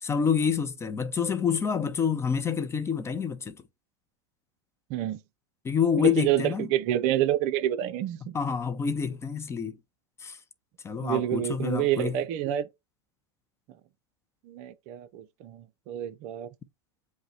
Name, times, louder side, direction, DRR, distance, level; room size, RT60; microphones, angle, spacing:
voice 1, 0.0-3.6 5.6-6.7 8.3-9.8 10.2-10.4 10.8-12.2, left 6 dB, 15° left, 0.5 m, -27 dB
voice 2, 4.9-5.2 6.0-8.4 11.0-12.7 14.4-16.5, right 12 dB, 50° right, 0.6 m, -28 dB
5.4 x 2.1 x 4.1 m
hypercardioid pair, 120°, 15 cm